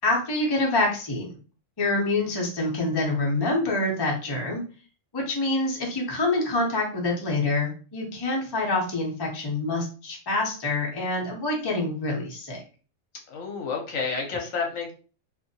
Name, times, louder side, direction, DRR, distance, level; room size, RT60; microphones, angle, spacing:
voice 1, 0.0-1.4 1.8-4.6 5.1-12.6, left 2 dB, 30° left, -1 dB, 0.4 m, -26 dB
voice 2, 13.3-14.9, left 5 dB, 65° left, 1 dB, 1.0 m, -30 dB
2.7 x 2.6 x 2.6 m, 0.37 s
omnidirectional pair, 1.6 m